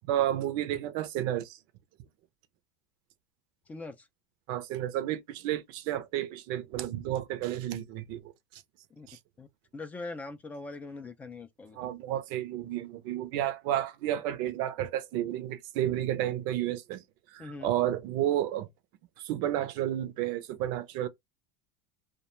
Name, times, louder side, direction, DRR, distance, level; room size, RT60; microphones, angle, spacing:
voice 1, 0.1-1.6 4.5-8.6 9.1-9.2 11.7-17.0 17.3-18.7 19.2-21.1, right 12 dB, 55° right, 0.5 m, -31 dB
voice 2, 3.7-4.1 9.0-9.1 9.4-9.5 9.7-11.8 17.4-17.7, left 3 dB, 15° left, 0.4 m, -41 dB
2.2 x 2.1 x 2.9 m
supercardioid pair, 135°, 9 cm